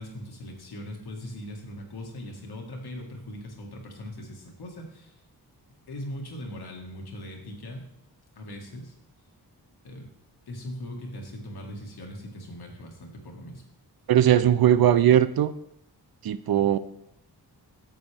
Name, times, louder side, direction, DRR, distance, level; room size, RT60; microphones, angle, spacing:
voice 1, 0.0-5.1 5.9-7.9 8.4-8.9 9.8-10.1 10.5-13.6, left 1 dB, 70° left, 1 dB, 1.9 m, -40 dB
voice 2, 14.1-15.5 16.2-16.8, right 10 dB, 65° right, 15 dB, 0.5 m, -19 dB
9.3 x 7.0 x 3.4 m, 0.76 s
cardioid pair, 70°, 39 cm